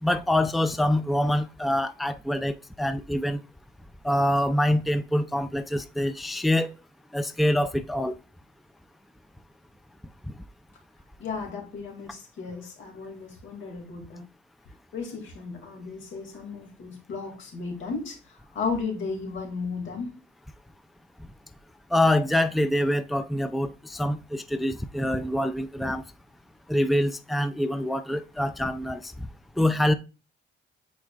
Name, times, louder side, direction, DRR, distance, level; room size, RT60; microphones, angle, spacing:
voice 1, 0.0-3.4 4.0-6.8 7.1-8.1 21.9-26.0 26.7-29.1 29.6-29.9, left 1 dB, ahead, 0.5 m, -25 dB
voice 2, 11.2-14.2 14.9-18.2 18.5-20.1, left 4 dB, 75° left, 2.5 m, -34 dB
9.2 x 4.4 x 2.5 m
cardioid pair, 90°, 20 cm